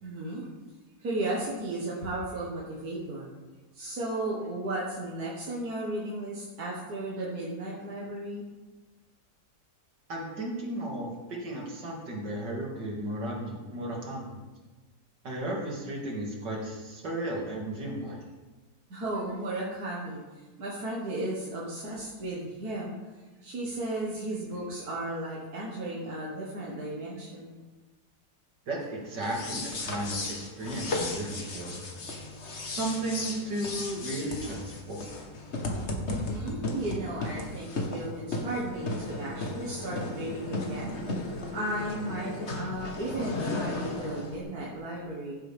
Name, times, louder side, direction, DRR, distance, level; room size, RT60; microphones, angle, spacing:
voice 1, 0.0-0.5 1.0-3.3 3.7-8.4 18.9-20.2 20.6-23.0 23.4-27.6 36.1-41.0 41.5-45.4, right 1 dB, 65° right, -6 dB, 2.1 m, -35 dB
voice 2, 10.1-14.3 15.2-18.3 28.7-31.8 32.6-35.0 35.2-35.3, right 1 dB, 90° right, -2 dB, 3.0 m, -34 dB
sound 1, 29.2-44.4, left 2 dB, 45° left, 1.5 m, -35 dB
15.0 x 7.7 x 3.5 m, 1.2 s
omnidirectional pair, 1.8 m